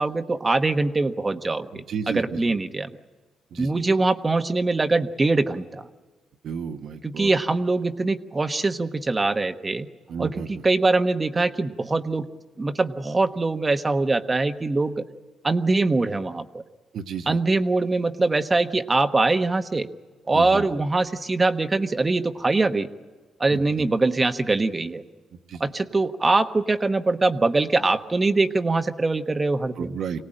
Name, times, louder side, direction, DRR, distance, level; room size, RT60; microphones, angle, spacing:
voice 1, 0.0-2.9 3.6-5.9 7.0-9.9 10.2-10.3 10.6-12.3 12.6-15.0 15.4-16.6 17.3-19.9 20.3-22.9 23.4-25.0 25.6-30.0, right 3 dB, 25° right, 8 dB, 1.2 m, -23 dB
voice 2, 1.7-2.4 3.5-3.8 6.4-7.3 10.1-10.6 16.9-17.4 20.3-20.7 23.5-23.9 25.3-25.6 29.8-30.3, right 6 dB, 65° right, 6 dB, 1.3 m, -33 dB
25.0 x 18.0 x 8.9 m, 1.3 s
cardioid pair, 90°, 0 cm